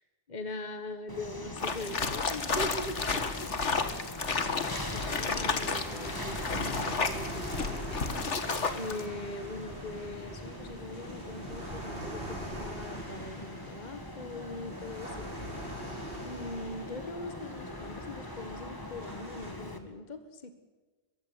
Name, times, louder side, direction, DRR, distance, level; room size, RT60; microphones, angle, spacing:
voice 1, 0.3-3.5 4.9-7.6 8.7-15.3 16.2-20.5, left 2 dB, 40° left, 9 dB, 1.7 m, -41 dB
sound 1, 1.1-19.8, left 1 dB, 20° left, 2.1 m, -42 dB
sound 2, 1.6-9.0, left 4 dB, 85° left, 2.0 m, -32 dB
sound 3, 2.8-19.5, right 1 dB, 55° right, 7.1 m, -43 dB
22.5 x 15.5 x 9.8 m, 1.3 s
omnidirectional pair, 1.2 m